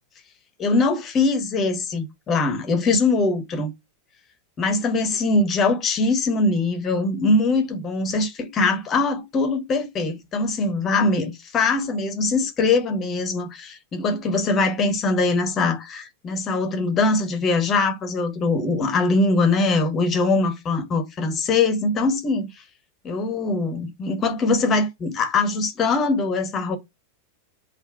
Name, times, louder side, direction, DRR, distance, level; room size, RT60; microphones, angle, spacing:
voice 1, 0.6-3.7 4.6-22.5 23.0-26.8, left 3 dB, 25° left, 1.3 m, -22 dB
3.4 x 2.8 x 4.5 m
figure-of-eight pair, 90°, 0 cm